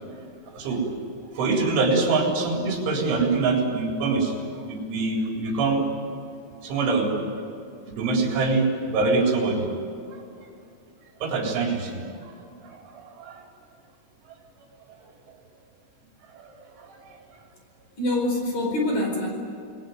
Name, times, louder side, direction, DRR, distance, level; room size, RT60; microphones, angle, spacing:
voice 1, 0.5-0.9 1.3-5.8 6.6-7.2 7.9-9.6 10.1-10.2 11.2-12.3 12.6-13.4 15.0-15.1 16.3-17.2, right 3 dB, 75° right, 0 dB, 6.4 m, -25 dB
voice 2, 18.0-19.3, left 1 dB, 40° left, 1 dB, 5.7 m, -25 dB
28.5 x 20.5 x 9.4 m, 2.5 s
omnidirectional pair, 5.7 m